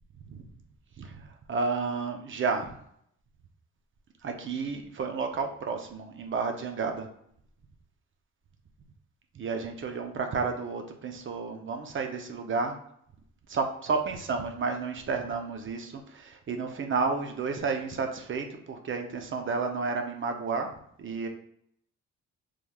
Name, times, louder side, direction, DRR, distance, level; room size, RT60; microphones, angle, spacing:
voice 1, 1.0-2.7 4.2-7.1 9.3-12.8 13.5-20.7 21.0-21.3, right 4 dB, 40° right, 5 dB, 0.5 m, -31 dB
3.3 x 3.1 x 2.2 m, 0.69 s
cardioid pair, 90°, 30 cm